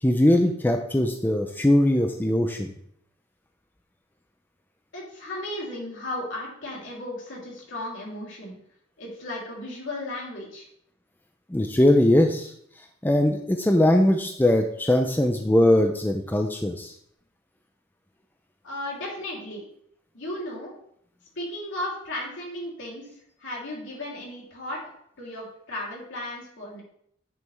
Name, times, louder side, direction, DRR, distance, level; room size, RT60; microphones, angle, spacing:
voice 1, 0.0-2.7 11.5-12.5 13.0-16.9, left 1 dB, 10° left, 4 dB, 0.5 m, -21 dB
voice 2, 4.9-8.6 9.0-10.6 18.6-19.6 20.1-20.7 21.3-23.1 23.4-24.8 25.2-26.8, left 1 dB, 65° left, -4 dB, 3.1 m, -35 dB
9.3 x 5.8 x 3.3 m, 0.68 s
head